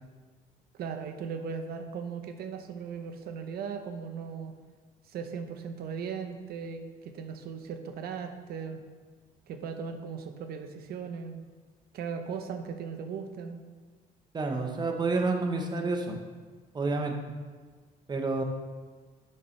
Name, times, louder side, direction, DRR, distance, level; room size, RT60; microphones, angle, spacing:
voice 1, 0.7-4.6 5.1-8.8 9.5-11.4 11.9-13.6, right 6 dB, 65° right, 6 dB, 0.9 m, -38 dB
voice 2, 14.3-16.2 16.7-17.4 18.1-18.4, right 3 dB, 25° right, 3 dB, 1.1 m, -29 dB
8.6 x 6.6 x 3.3 m, 1.5 s
cardioid pair, 110°, 17 cm